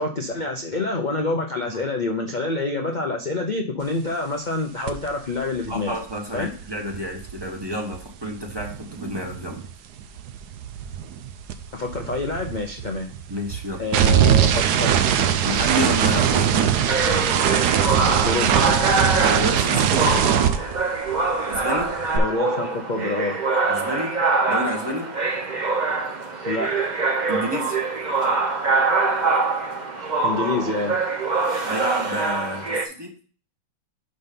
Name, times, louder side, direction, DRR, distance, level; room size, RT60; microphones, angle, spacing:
voice 1, 0.0-5.9 6.3-6.5 11.7-13.1 13.8-14.9 18.2-18.6 22.1-23.4 26.5-26.9 30.2-31.0, left 3 dB, 70° left, 2 dB, 0.4 m, -27 dB
sound 1, 4.9-5.1 5.3-9.7 10.0-21.3 21.5-22.2, right 9 dB, 70° right, 1.1 m, -22 dB
voice 2, 5.7-9.6 13.3-13.8 15.4-16.8 19.2-20.3 21.5-22.0 23.7-25.2 27.3-27.8 31.6-33.1, equal, 15° right, 1 dB, 1.0 m, -30 dB
sound 2, 16.9-32.9, right 3 dB, 35° right, 0.7 m, -24 dB
5.7 x 5.2 x 5.1 m, 0.40 s
omnidirectional pair, 2.1 m